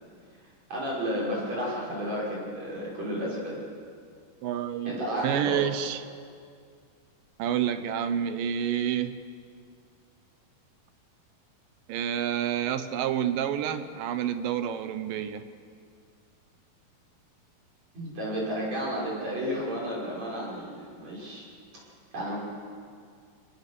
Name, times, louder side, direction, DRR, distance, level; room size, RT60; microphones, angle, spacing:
voice 1, 0.7-3.6 4.9-5.6 17.9-21.4 22.1-22.4, equal, 50° right, -4 dB, 7.1 m, -32 dB
voice 2, 4.4-5.0 5.2-6.0 7.4-9.1 11.9-15.5, right 9 dB, 80° right, 10 dB, 2.6 m, -28 dB
26.5 x 19.0 x 6.8 m, 2.2 s
omnidirectional pair, 4.0 m